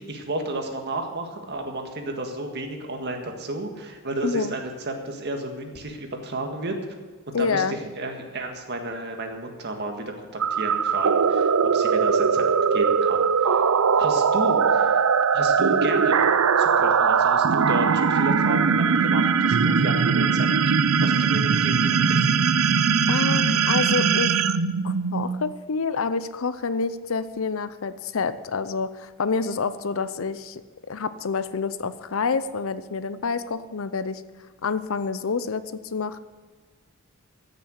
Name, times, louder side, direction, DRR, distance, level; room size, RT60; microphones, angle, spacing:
voice 1, 0.1-6.8 7.3-12.4 12.7-13.6 13.9-14.9 15.3-16.2 16.6-20.7 21.0-22.3, right 2 dB, 55° right, 4 dB, 1.8 m, -32 dB
voice 2, 4.2-4.6 7.3-7.8 23.1-24.4 24.8-30.6 30.9-34.2 34.6-36.2, left 5 dB, 75° left, 14 dB, 0.6 m, -28 dB
sound 1, 10.4-25.5, right 6 dB, 90° right, 0.6 m, -20 dB
14.5 x 6.9 x 8.0 m, 1.4 s
head